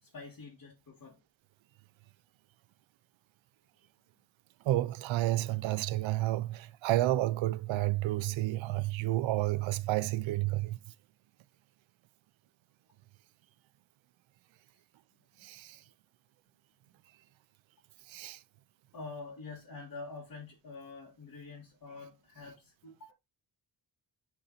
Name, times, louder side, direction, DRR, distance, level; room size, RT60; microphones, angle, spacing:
voice 1, 0.0-1.2 18.9-23.1, left 3 dB, 50° left, 2.1 m, -46 dB
voice 2, 4.6-10.8 15.4-15.8 18.1-18.4, right 16 dB, 90° right, 0.6 m, -30 dB
7.2 x 4.0 x 4.1 m
wide cardioid pair, 150°, 45 cm